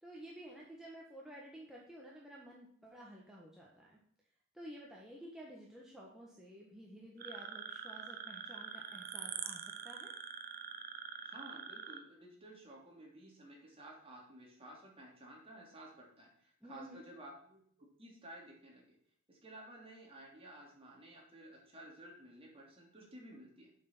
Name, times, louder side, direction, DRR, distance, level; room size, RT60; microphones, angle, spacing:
voice 1, 0.0-4.0 4.5-10.1 16.6-17.0, equal, ahead, -4 dB, 1.5 m, -52 dB
sound 1, 7.2-12.0, right 7 dB, 45° right, 0.9 m, -45 dB
voice 2, 11.2-19.0 19.3-23.7, right 1 dB, 30° right, -1 dB, 3.0 m, -54 dB
7.7 x 6.3 x 6.1 m, 0.62 s
head